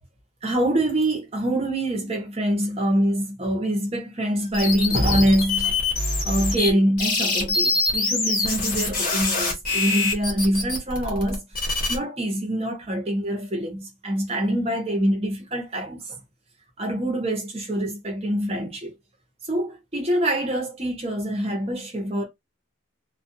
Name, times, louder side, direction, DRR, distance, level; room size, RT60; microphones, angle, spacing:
voice 1, 0.4-5.8 6.2-11.4 11.9-16.2 16.8-18.9 19.5-22.2, right 1 dB, 30° right, 0.9 m, -25 dB
sound 1, 4.5-6.7 7.0-12.0, left 3 dB, 45° left, 1.0 m, -24 dB
2.4 x 2.3 x 2.6 m
head